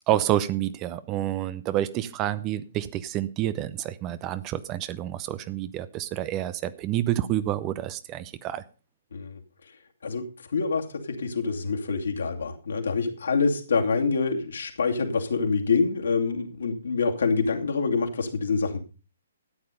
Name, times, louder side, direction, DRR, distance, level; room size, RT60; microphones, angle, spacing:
voice 1, 0.1-8.6, right 13 dB, 25° right, 0.8 m, -28 dB
voice 2, 10.5-18.8, left 4 dB, 60° left, 2.6 m, -26 dB
13.5 x 9.7 x 5.1 m
figure-of-eight pair, 125°, 0 cm